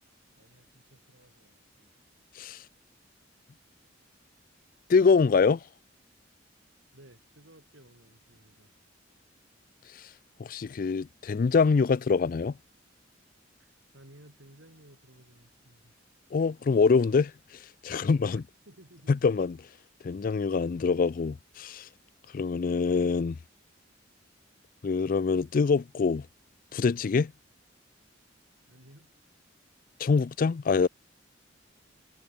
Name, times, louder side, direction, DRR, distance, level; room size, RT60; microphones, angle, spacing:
voice 1, 0.1-2.0 6.9-8.7 13.6-15.9 18.3-19.2 22.5-22.7 28.7-29.1, right 1 dB, 85° right, 6.5 m, -57 dB
voice 2, 4.9-5.6 10.4-12.5 16.3-17.3 17.8-18.4 19.2-19.5 20.0-21.9 22.3-23.4 24.8-26.3 26.7-27.3 30.0-30.9, left 5 dB, 45° left, 0.4 m, -24 dB
head